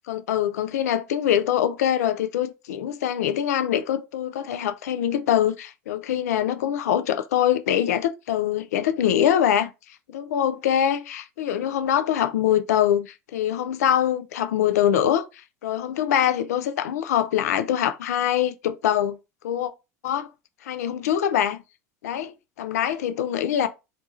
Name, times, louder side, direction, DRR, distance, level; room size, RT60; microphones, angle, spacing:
voice 1, 0.1-9.7 10.1-15.3 15.6-19.2 19.4-19.7 20.0-20.3 20.6-21.6 22.0-23.7, left 10 dB, 85° left, 0.3 m, -23 dB
2.5 x 2.3 x 4.1 m
hypercardioid pair, 85°, 8 cm